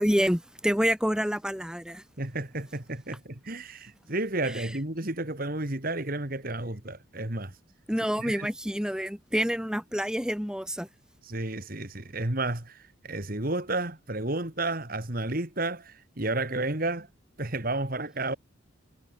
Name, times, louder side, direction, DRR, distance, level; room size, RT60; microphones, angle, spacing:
voice 1, 0.0-2.0 4.5-4.7 7.9-10.9, equal, 5° right, 4.2 m, -27 dB
voice 2, 2.2-7.5 8.2-8.5 11.2-17.1 17.4-18.4, right 2 dB, 45° right, 2.3 m, -32 dB
head